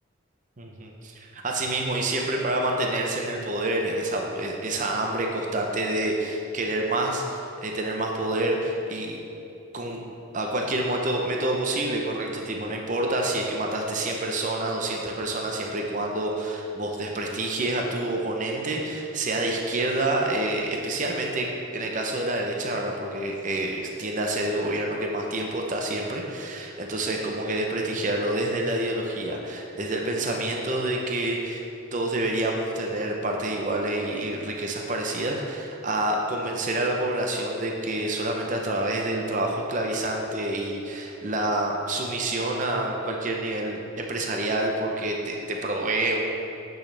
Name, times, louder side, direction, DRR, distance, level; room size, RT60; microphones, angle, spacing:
voice 1, 0.6-9.2 9.7-10.0 10.3-31.6 31.9-46.3, right 1 dB, 40° right, 1 dB, 0.7 m, -28 dB
8.6 x 6.3 x 3.3 m, 2.8 s
head